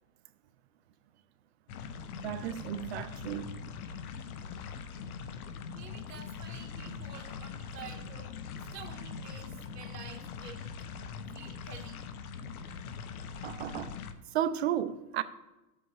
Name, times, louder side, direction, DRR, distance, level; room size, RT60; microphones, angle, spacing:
sound 1, 1.7-14.1, left 6 dB, 65° left, 0.9 m, -42 dB
voice 1, 2.2-3.6 13.4-14.0 14.3-15.2, right 11 dB, 45° right, 0.5 m, -33 dB
voice 2, 5.7-8.3 8.7-10.7 11.3-12.0, right 7 dB, 85° right, 1.4 m, -49 dB
12.0 x 7.9 x 3.2 m
hypercardioid pair, 150°, 47 cm